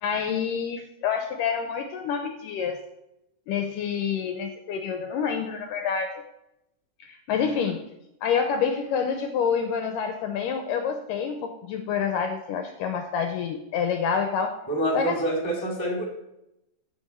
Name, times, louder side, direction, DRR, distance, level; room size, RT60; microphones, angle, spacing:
voice 1, 0.0-2.8 3.5-6.2 7.0-7.9 8.2-14.6 14.9-15.3, left 6 dB, 80° left, 6 dB, 2.0 m, -27 dB
voice 2, 14.7-16.0, right 1 dB, 10° left, -1 dB, 1.6 m, -26 dB
15.0 x 5.5 x 4.3 m, 0.86 s
omnidirectional pair, 4.3 m